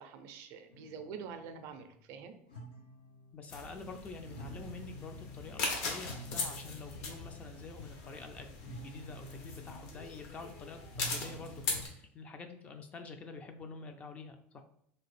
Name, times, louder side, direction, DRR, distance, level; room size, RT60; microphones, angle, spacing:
voice 1, 0.0-2.3, right 6 dB, 55° right, 7 dB, 0.4 m, -46 dB
sound 1, 0.7-2.2 2.5-3.9 4.1-7.5 8.6-10.0 10.9-11.9, right 1 dB, 90° left, 1.0 m, -50 dB
voice 2, 3.3-10.8 11.1-14.6, left 4 dB, 25° left, 6 dB, 0.3 m, -47 dB
sound 2, 3.5-11.9, left 3 dB, 60° left, 0.8 m, -40 dB
2.8 x 2.4 x 3.2 m, 0.71 s
supercardioid pair, 135°, 6 cm